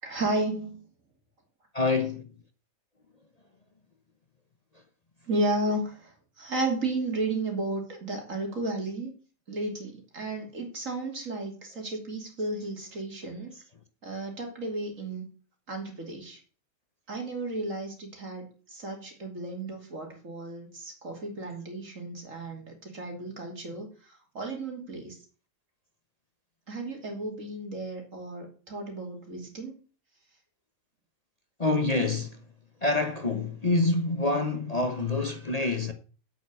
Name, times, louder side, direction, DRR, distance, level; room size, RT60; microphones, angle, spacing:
voice 1, 0.0-0.8 5.3-9.1 9.5-13.5 14.0-15.2 15.7-16.4 17.1-25.2 26.7-29.8, right 2 dB, 65° right, 3.2 m, -33 dB
voice 2, 1.7-2.3 31.6-32.5 32.8-35.9, left 3 dB, 30° left, 1.0 m, -26 dB
8.3 x 7.2 x 8.1 m
omnidirectional pair, 1.5 m